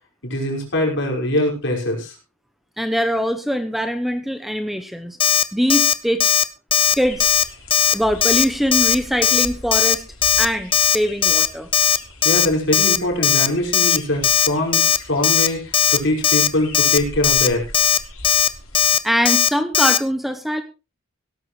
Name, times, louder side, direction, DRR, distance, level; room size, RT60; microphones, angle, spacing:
voice 1, 0.2-2.1 12.2-17.6, left 1 dB, 55° left, 0 dB, 5.5 m, -22 dB
voice 2, 2.8-6.3 7.0-7.3 7.9-10.0 10.4-11.7 19.0-20.6, equal, ahead, 9 dB, 0.9 m, -22 dB
Alarm, 5.2-5.4 5.7-5.9 6.2-6.4 6.7-6.9 7.2-7.4 7.7-7.9 8.2-8.4 8.7-8.9 9.2-9.5 9.7-9.9 10.2-10.4 10.7-11.0 11.2-11.5 11.7-12.0 12.2-12.5 12.7-13.0 13.2-13.5 13.7-14.0 14.2-14.5 14.7-15.0 15.2-15.5 15.7-16.0 16.2-16.5 16.7-17.0 17.2-17.5 17.7-18.0 18.2-18.5 18.7-19.0 19.2-19.5 19.7-20.0, left 9 dB, 25° left, 0.6 m, -16 dB
sound 1, 6.8-19.0, left 1 dB, 85° left, 4.8 m, -40 dB
17.0 x 13.0 x 3.2 m, 0.30 s
head